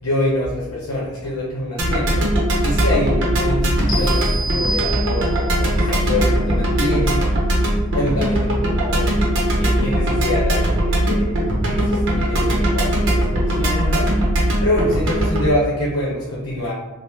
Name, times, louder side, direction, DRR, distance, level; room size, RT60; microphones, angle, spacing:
voice 1, 0.0-2.3 2.6-7.2 7.9-9.1 9.5-14.1 14.6-16.7, left 1 dB, 70° left, -6 dB, 0.7 m, -25 dB
sound 1, 1.8-15.5, right 1 dB, 55° right, 0.7 m, -19 dB
sound 2, 3.9-5.6, right 2 dB, 20° left, 0.5 m, -27 dB
2.8 x 2.1 x 3.3 m, 1.1 s
head